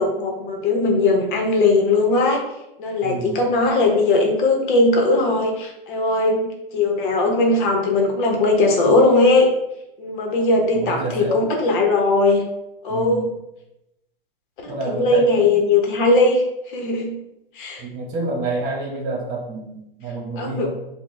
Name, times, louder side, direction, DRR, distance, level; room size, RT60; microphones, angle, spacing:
voice 1, 0.0-2.4 2.8-9.5 10.0-12.4 12.8-13.2 14.6-17.2 17.5-17.8 20.4-20.7, left 2 dB, 55° left, 1 dB, 1.0 m, -19 dB
voice 2, 3.0-3.5 10.7-11.5 12.9-13.3 14.7-15.6 17.8-20.7, right 2 dB, 35° right, -1 dB, 1.2 m, -28 dB
4.1 x 2.3 x 3.3 m, 0.89 s
hypercardioid pair, 125°, 30 cm